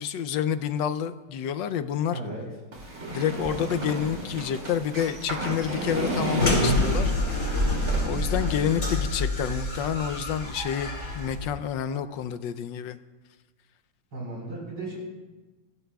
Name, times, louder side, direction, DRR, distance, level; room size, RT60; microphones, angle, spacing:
voice 1, 0.0-2.2 3.1-7.1 8.0-13.0, left 9 dB, 70° left, 12 dB, 1.2 m, -29 dB
voice 2, 2.1-2.5 8.0-8.8 14.1-15.0, right 2 dB, 60° right, -3 dB, 5.2 m, -37 dB
sound 1, 2.7-8.0, equal, 40° right, 2.9 m, -30 dB
sound 2, 6.4-11.5, left 2 dB, 50° left, 3.5 m, -28 dB
28.0 x 12.0 x 2.3 m, 1.2 s
omnidirectional pair, 2.2 m